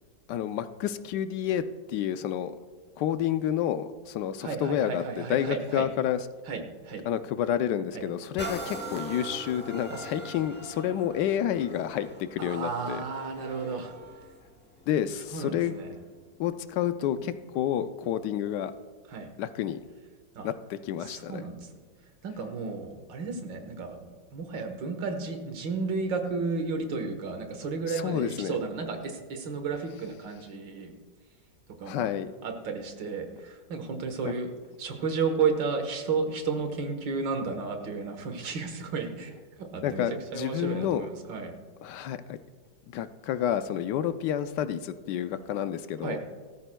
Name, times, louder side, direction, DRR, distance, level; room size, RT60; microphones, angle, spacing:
voice 1, 0.3-1.6 1.9-2.5 3.0-6.2 7.1-13.0 14.9-15.8 16.4-18.7 19.4-19.8 20.4-21.4 28.0-28.6 31.9-32.3 34.2-34.3 39.8-41.1 41.8-42.4 42.9-46.2, left 10 dB, 75° left, 11 dB, 1.2 m, -29 dB
voice 2, 4.4-5.9 6.5-7.0 7.9-8.0 9.9-10.1 12.4-13.9 15.3-15.9 19.1-19.3 20.4-20.5 21.0-21.7 22.2-30.9 31.8-32.1 32.4-34.5 34.8-39.3 39.6-41.5 46.0-46.2, right 4 dB, 90° right, 6 dB, 2.0 m, -33 dB
sound 1, 8.4-16.0 16.6-16.7, right 1 dB, 15° left, 0.3 m, -42 dB
17.5 x 13.5 x 2.2 m, 1.5 s
omnidirectional pair, 1.9 m